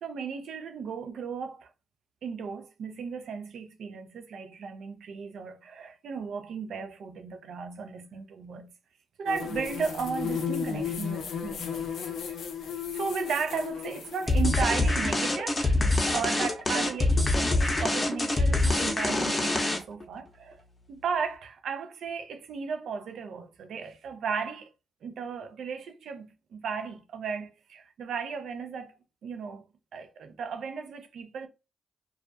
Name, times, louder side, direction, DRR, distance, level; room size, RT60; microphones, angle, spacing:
voice 1, 0.0-1.7 2.2-8.7 9.2-11.8 12.3-12.5 12.9-20.6 20.9-24.7 25.0-28.9 29.2-29.6 29.9-31.5, right 6 dB, 75° right, 0.4 m, -35 dB
sound 1, 9.3-14.4, left 7 dB, 80° left, 0.4 m, -34 dB
sound 2, 14.3-20.0, left 2 dB, 35° left, 0.6 m, -25 dB
2.3 x 2.1 x 2.5 m
supercardioid pair, 50°, 0 cm